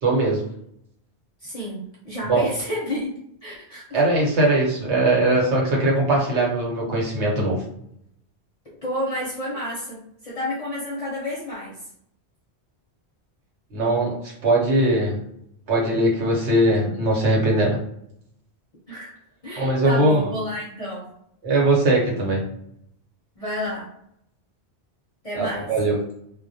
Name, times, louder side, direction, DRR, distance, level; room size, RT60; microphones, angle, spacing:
voice 1, 0.0-0.4 2.3-2.5 3.9-7.6 13.7-14.1 14.4-15.2 15.7-17.8 19.6-20.3 21.4-22.4 25.3-26.0, right 1 dB, 90° right, -3 dB, 1.1 m, -20 dB
voice 2, 1.4-3.1 3.4-4.0 8.8-11.8 18.9-19.1 19.4-21.1 23.4-23.9 25.2-25.7, equal, 45° left, -5 dB, 0.6 m, -30 dB
2.2 x 2.1 x 2.6 m, 0.73 s
omnidirectional pair, 1.1 m